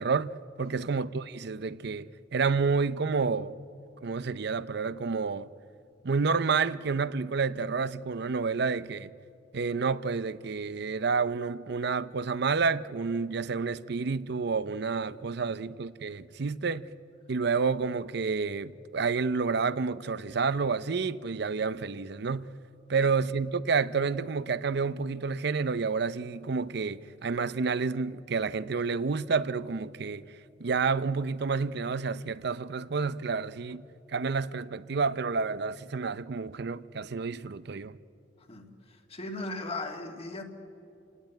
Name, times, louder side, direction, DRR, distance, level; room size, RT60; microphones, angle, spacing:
voice 1, 0.0-3.6 4.0-5.5 6.0-9.1 9.5-16.9 17.3-22.5 22.9-38.0, right 5 dB, 60° right, 0.6 m, -29 dB
voice 2, 38.4-40.4, left 2 dB, 35° left, 2.1 m, -38 dB
29.0 x 18.0 x 9.3 m
head